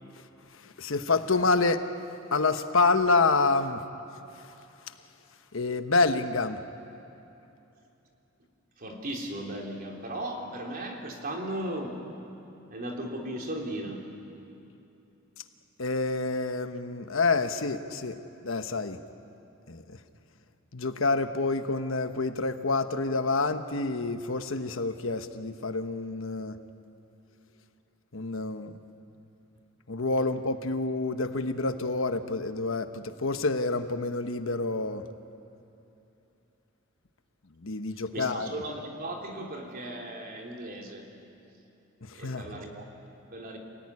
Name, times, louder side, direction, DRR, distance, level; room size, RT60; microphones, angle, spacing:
voice 1, 0.8-1.9 2.3-3.8 5.5-6.6 15.8-18.2 18.4-19.0 19.7-20.0 20.7-26.6 28.1-28.7 29.9-35.1 37.6-38.5 42.0-42.5, left 3 dB, 75° left, 8 dB, 1.2 m, -27 dB
voice 2, 8.8-12.0 12.7-14.1 38.1-41.1 42.1-43.6, right 1 dB, 45° right, 1 dB, 3.5 m, -36 dB
28.0 x 19.0 x 9.8 m, 2.9 s
head